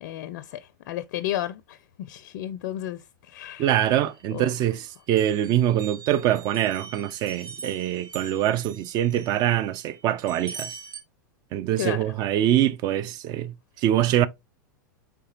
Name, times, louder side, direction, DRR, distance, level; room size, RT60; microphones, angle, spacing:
voice 1, 0.0-1.8 2.1-3.7 4.3-4.5 11.8-12.0, left 13 dB, 60° left, 0.4 m, -33 dB
voice 2, 3.6-10.8 11.5-14.3, right 12 dB, 40° right, 0.5 m, -24 dB
sound 1, 3.7-4.8 5.2-11.0, right 5 dB, 80° right, 1.1 m, -43 dB
4.7 x 3.5 x 2.8 m
hypercardioid pair, 110°, 11 cm